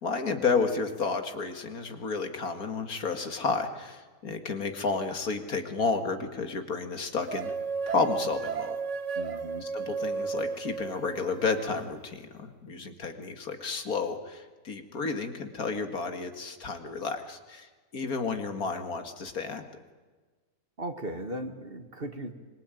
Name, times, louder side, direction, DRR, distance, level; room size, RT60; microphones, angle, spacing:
voice 1, 0.0-7.5 7.9-8.8 9.6-19.6, left 4 dB, 80° left, 7 dB, 2.5 m, -31 dB
sound 1, 7.3-11.8, right 5 dB, 55° right, 1.4 m, -33 dB
voice 2, 9.2-9.7 20.8-22.3, right 1 dB, 40° right, 7 dB, 2.2 m, -37 dB
25.0 x 23.0 x 9.2 m, 1.3 s
omnidirectional pair, 1.5 m